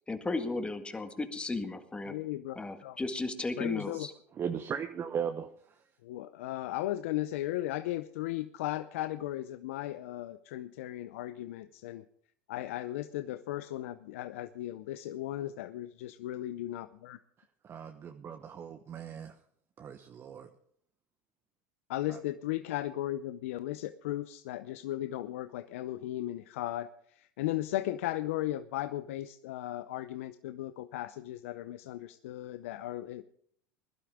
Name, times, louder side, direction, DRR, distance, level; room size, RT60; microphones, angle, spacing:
voice 1, 0.1-2.1 2.6-4.1, left 3 dB, 15° left, 7 dB, 1.9 m, -35 dB
voice 2, 2.1-3.0 3.6-4.1 6.0-12.0 12.5-17.2 21.9-33.2, left 14 dB, 80° left, 12 dB, 0.6 m, -36 dB
voice 3, 4.3-5.8 17.6-19.3 19.8-20.5 22.1-22.2, right 7 dB, 35° right, 6 dB, 1.1 m, -38 dB
21.0 x 11.5 x 3.6 m, 0.63 s
hypercardioid pair, 95°, 7 cm